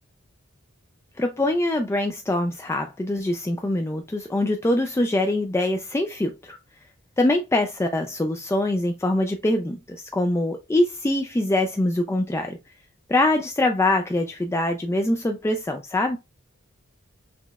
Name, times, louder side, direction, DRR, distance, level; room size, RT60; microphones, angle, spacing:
voice 1, 1.2-6.6 7.2-12.6 13.1-16.2, left 1 dB, 15° left, 0.3 m, -24 dB
5.9 x 3.0 x 2.3 m
head